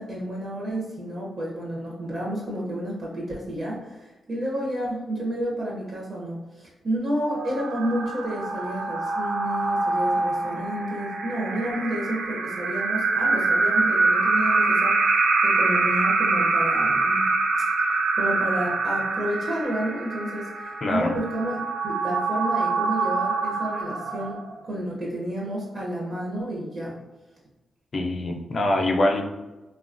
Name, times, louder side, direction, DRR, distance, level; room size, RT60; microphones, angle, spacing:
voice 1, 0.0-17.2 17.8-20.5 20.9-21.6 21.8-27.0, right 1 dB, 40° right, -5 dB, 0.6 m, -30 dB
sound 1, 7.3-24.7, right 3 dB, 85° right, 0.3 m, -25 dB
voice 2, 20.8-21.1 27.9-29.2, left 1 dB, 35° left, 2 dB, 0.4 m, -24 dB
3.3 x 2.2 x 2.4 m, 1.1 s
wide cardioid pair, 165°, 0 cm